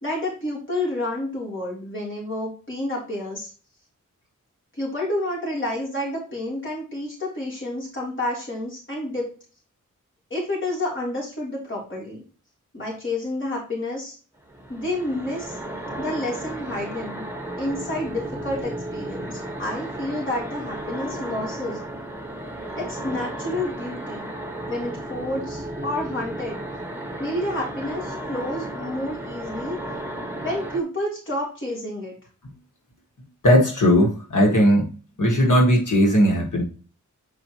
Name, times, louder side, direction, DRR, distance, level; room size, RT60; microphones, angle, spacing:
voice 1, 0.0-3.5 4.7-9.3 10.3-12.2 12.7-14.2 14.7-15.6 16.0-17.2 17.6-21.8 22.8-24.3 24.7-26.6 27.2-29.8 30.4-32.2, left 1 dB, 40° left, 3.3 m, -29 dB
sound 1, 14.5-30.8, right 1 dB, 10° right, 1.5 m, -34 dB
voice 2, 33.4-34.9 35.2-36.6, equal, 80° left, 1.8 m, -17 dB
9.2 x 4.7 x 3.0 m
wide cardioid pair, 80°, 30 cm